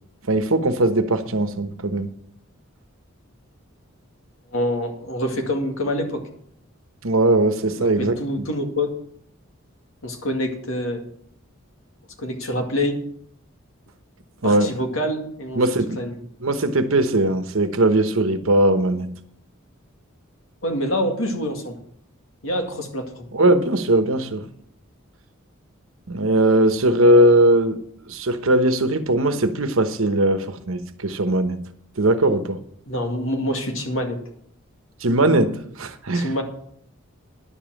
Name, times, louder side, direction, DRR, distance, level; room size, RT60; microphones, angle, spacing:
voice 1, 0.3-2.1 7.0-8.5 14.4-14.7 15.5-16.0 16.4-19.1 23.3-24.4 26.1-27.8 28.0-31.6 32.0-32.6 35.0-36.4, right 1 dB, 80° right, 1.1 m, -19 dB
voice 2, 4.5-6.2 7.8-8.9 10.0-11.0 12.2-13.0 14.4-16.2 20.6-21.8 22.4-23.3 31.3-31.4 32.9-34.2 36.1-36.4, equal, 75° left, 2.2 m, -26 dB
10.5 x 7.2 x 7.6 m
head